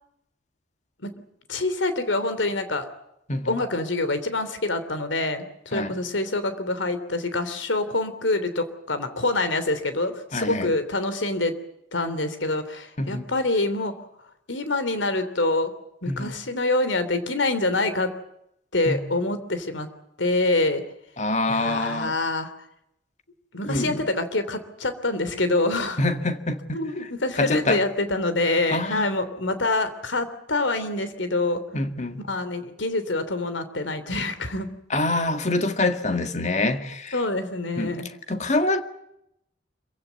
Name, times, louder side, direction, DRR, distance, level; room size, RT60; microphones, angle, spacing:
voice 1, 1.5-2.9 3.4-11.5 11.9-13.9 14.5-15.7 16.0-18.1 18.7-19.9 20.2-20.8 21.5-22.5 23.5-26.0 26.7-31.6 32.3-34.7 37.1-38.1, left 2 dB, 85° left, 3.2 m, -26 dB
voice 2, 10.3-10.7 13.0-13.2 16.1-16.3 18.9-19.0 21.2-22.1 23.7-24.0 26.0-26.6 27.4-27.8 28.7-29.1 31.7-32.2 34.9-37.2 37.8-38.0 38.3-38.8, left 2 dB, 40° left, 1.9 m, -25 dB
26.5 x 16.5 x 9.5 m
head